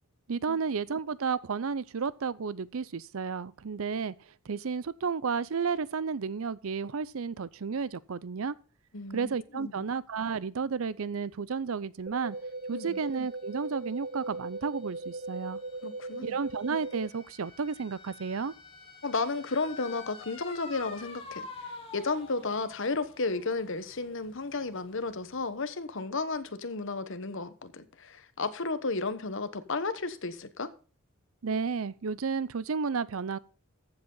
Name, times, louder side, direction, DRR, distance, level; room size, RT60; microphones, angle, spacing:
voice 1, 0.3-4.1 4.5-8.5 9.1-12.4 12.7-15.6 16.2-18.5 31.4-33.4, right 5 dB, 75° right, 0.6 m, -32 dB
voice 2, 8.9-9.7 12.7-13.0 15.8-16.4 19.0-30.7, left 3 dB, 60° left, 1.1 m, -33 dB
sound 1, 12.1-17.1, right 2 dB, 35° right, 1.1 m, -39 dB
sound 2, 12.3-25.7, left 3 dB, 25° left, 2.8 m, -49 dB
14.5 x 7.9 x 3.9 m
head